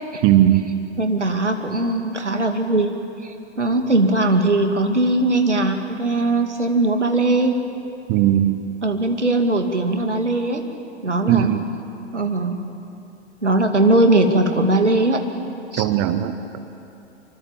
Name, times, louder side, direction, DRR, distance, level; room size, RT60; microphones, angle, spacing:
voice 1, 0.2-0.7 8.1-8.5 11.3-11.6 15.8-16.6, right 12 dB, 30° right, 10 dB, 1.0 m, -18 dB
voice 2, 1.0-2.9 3.2-7.6 8.8-10.6 11.0-11.5 12.1-12.7 13.4-15.2 15.7-15.9, right 2 dB, 80° right, 5 dB, 2.6 m, -20 dB
25.0 x 24.5 x 7.4 m, 2.7 s
figure-of-eight pair, 110°, 35 cm